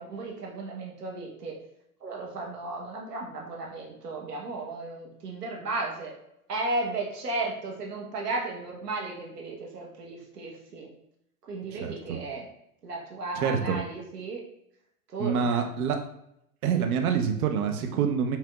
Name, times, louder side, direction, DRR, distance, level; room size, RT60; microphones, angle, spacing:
voice 1, 0.0-1.6 2.0-6.1 6.5-10.9 11.5-12.5 12.8-14.4 15.1-15.7, right 2 dB, 90° right, -1 dB, 1.2 m, -34 dB
voice 2, 11.7-12.2 13.4-13.8 15.2-16.0 16.6-18.4, right 7 dB, 65° right, 5 dB, 0.8 m, -26 dB
5.5 x 3.4 x 2.4 m, 0.78 s
hypercardioid pair, 100°, 46 cm